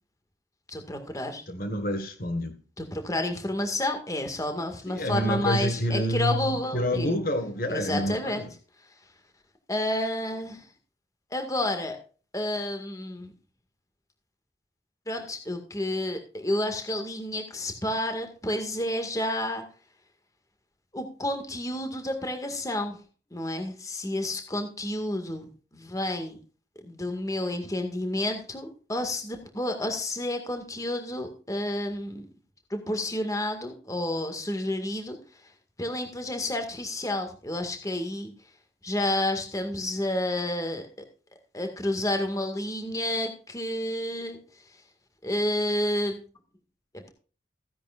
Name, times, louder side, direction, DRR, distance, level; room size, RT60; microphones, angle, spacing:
voice 1, 0.7-1.4 2.8-7.1 7.7-8.4 9.7-10.7 11.3-12.0 12.3-13.3 15.1-19.6 20.9-23.0 23.3-26.4 26.8-32.3 32.7-35.2 35.8-38.3 38.8-40.9 41.5-44.4 45.2-46.2 46.9-47.1, left 1 dB, 20° left, 2.0 m, -30 dB
voice 2, 1.5-2.6 4.9-8.5, equal, 50° left, 1.8 m, -28 dB
16.0 x 10.0 x 2.5 m
head